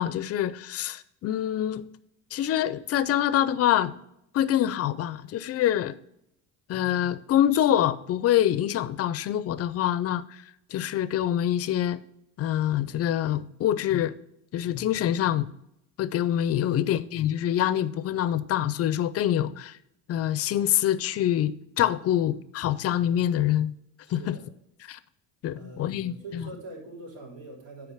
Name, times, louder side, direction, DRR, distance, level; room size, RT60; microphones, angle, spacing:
voice 1, 0.0-1.9 2.3-3.9 4.3-5.9 6.7-10.2 10.7-12.0 12.4-14.1 14.5-15.5 16.0-19.8 20.1-23.7 24.1-24.4 24.9-25.0 25.4-26.5, left 11 dB, 40° left, 0.5 m, -25 dB
voice 2, 16.7-17.0 24.1-24.5 25.6-27.9, right 2 dB, 85° right, 3.4 m, -44 dB
8.2 x 4.9 x 4.9 m
cardioid pair, 120°, 40 cm